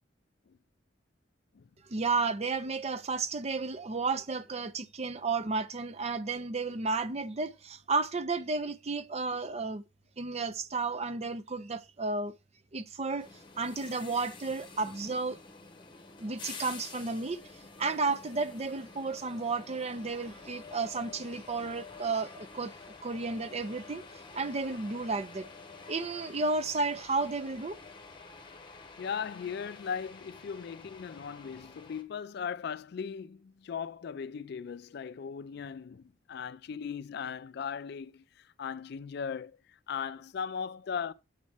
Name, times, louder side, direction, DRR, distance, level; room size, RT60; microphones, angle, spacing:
voice 1, 1.9-9.8 10.2-12.3 12.7-13.3 13.6-15.4 16.2-17.4 17.8-22.7 23.0-24.0 24.3-25.5 25.9-27.8, right 3 dB, 35° right, 0.6 m, -32 dB
sound 1, 13.2-32.0, left 4 dB, 25° left, 1.1 m, -49 dB
voice 2, 29.0-41.1, left 6 dB, 60° left, 0.4 m, -38 dB
7.4 x 4.1 x 4.7 m
head